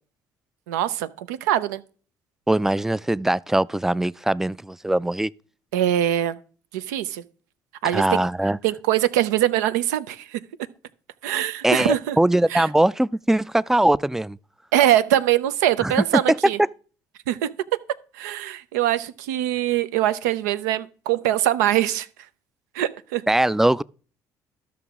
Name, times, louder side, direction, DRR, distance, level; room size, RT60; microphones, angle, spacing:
voice 1, 0.7-1.8 5.7-6.4 6.7-7.2 7.8-8.2 8.6-10.4 11.2-12.2 12.5-12.7 14.7-16.6 17.3-17.5 18.1-22.1 22.7-23.2, right 12 dB, 85° right, 0.5 m, -23 dB
voice 2, 2.5-5.3 7.9-8.6 11.6-14.4 15.8-16.5 23.3-23.8, right 1 dB, 5° right, 0.3 m, -21 dB
13.0 x 5.9 x 3.6 m
hypercardioid pair, 65°, 9 cm